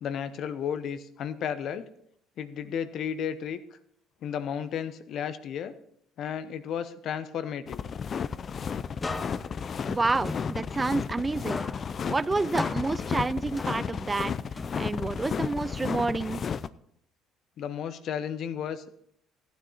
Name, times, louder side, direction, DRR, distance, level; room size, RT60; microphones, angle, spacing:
voice 1, 0.0-1.9 2.4-3.6 4.2-5.7 6.2-7.8 17.6-18.9, left 8 dB, 60° left, 12 dB, 0.9 m, -33 dB
sound 1, 7.7-16.7, left 6 dB, 45° left, 0.5 m, -33 dB
sound 2, 9.0-11.2 11.5-14.2 14.6-16.2, left 3 dB, 25° left, 0.9 m, -39 dB
voice 2, 9.9-11.6 12.0-14.3 14.8-16.4, right 3 dB, 20° right, 16 dB, 0.4 m, -29 dB
14.5 x 9.5 x 4.1 m, 0.71 s
supercardioid pair, 75°, 0 cm